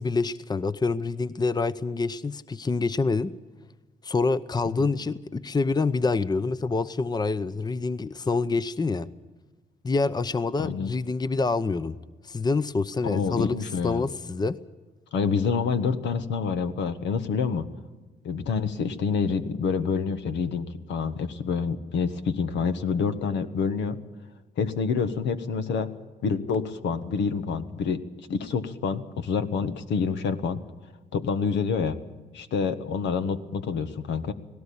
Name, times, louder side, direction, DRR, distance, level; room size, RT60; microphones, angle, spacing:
voice 1, 0.0-3.3 4.0-9.1 9.8-12.0 12.2-14.6, left 3 dB, 20° left, 15 dB, 0.8 m, -26 dB
voice 2, 10.6-10.9 13.0-14.0 15.1-17.7 18.2-24.0 24.6-25.9 26.2-30.6 31.1-32.0 32.3-34.3, left 5 dB, 80° left, 9 dB, 1.4 m, -27 dB
18.5 x 17.5 x 8.6 m, 1.2 s
supercardioid pair, 70°, 18 cm